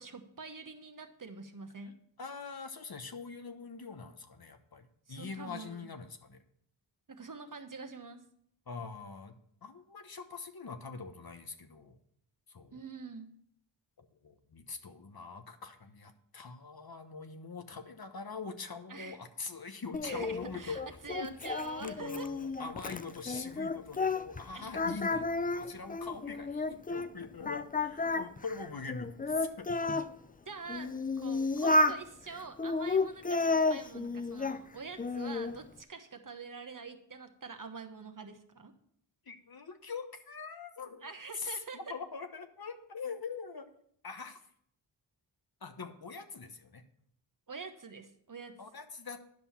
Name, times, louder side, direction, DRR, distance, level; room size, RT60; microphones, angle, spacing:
voice 1, 0.0-2.0 5.1-5.9 7.1-8.2 12.7-13.3 18.9-19.2 20.0-22.3 24.5-24.8 30.5-38.7 41.0-41.9 47.5-48.6, right 4 dB, 45° right, 7 dB, 1.1 m, -45 dB
voice 2, 2.2-6.4 8.7-9.3 9.6-12.0 12.5-12.8 14.2-20.8 21.2-21.5 21.8-29.9 39.3-41.1 41.4-43.7 44.0-44.4 45.6-46.8 48.6-49.2, left 4 dB, 50° left, 7 dB, 1.1 m, -43 dB
Singing, 19.9-24.4 24.7-27.1 27.5-30.1 30.7-32.0 32.6-34.6 35.0-35.6, left 3 dB, 20° left, 0.5 m, -32 dB
10.5 x 5.4 x 5.7 m, 0.67 s
cardioid pair, 45°, 47 cm